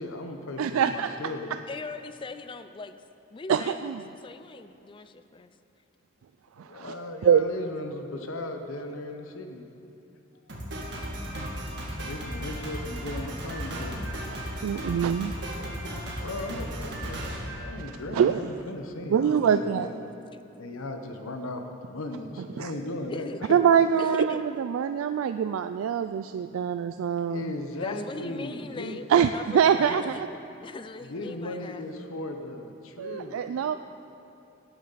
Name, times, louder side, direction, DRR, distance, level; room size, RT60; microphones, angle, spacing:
voice 1, 0.0-1.5 6.6-9.7 11.9-14.1 16.2-20.0 20.6-23.6 27.1-29.0 29.9-30.0 31.0-33.4, left 2 dB, 85° left, 5 dB, 0.9 m, -37 dB
voice 2, 0.6-1.1 3.5-4.0 6.6-6.9 7.2-7.4 14.6-15.3 18.1-18.5 19.1-19.9 22.6-22.7 23.5-27.5 29.1-30.3 33.0-33.7, right 8 dB, 85° right, 9 dB, 0.3 m, -24 dB
voice 3, 1.7-3.0 3.3-5.5 11.9-12.0 20.3-20.4 23.1-23.4 24.0-24.4 27.8-30.3 30.6-31.8, left 3 dB, 25° left, 11 dB, 0.4 m, -40 dB
Drum kit, 10.5-18.3, equal, 60° right, 2.0 m, -35 dB
17.0 x 9.0 x 4.0 m, 2.8 s
head